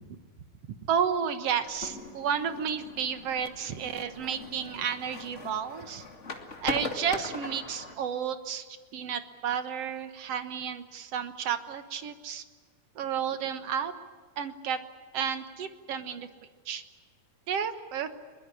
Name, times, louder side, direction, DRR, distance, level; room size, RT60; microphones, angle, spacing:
voice 1, 0.9-6.0 6.6-8.7 8.9-12.4 12.9-13.9 14.4-14.8 15.1-16.3 16.6-16.8 17.5-18.1, right 7 dB, 60° right, 9 dB, 1.8 m, -32 dB
sound 1, 1.7-7.9, left 3 dB, 25° left, 2.0 m, -40 dB
22.5 x 22.5 x 9.9 m, 1.5 s
omnidirectional pair, 4.2 m